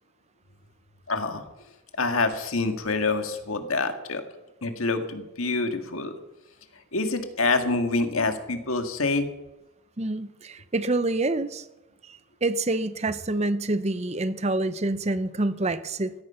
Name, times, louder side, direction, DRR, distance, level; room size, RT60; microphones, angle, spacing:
voice 1, 1.1-1.4 2.0-4.2 4.6-6.1 6.9-9.3, left 3 dB, 80° left, 7 dB, 1.8 m, -26 dB
voice 2, 10.0-11.6 12.1-16.1, right 2 dB, 30° right, 13 dB, 0.7 m, -27 dB
16.0 x 14.5 x 5.6 m, 1.0 s
head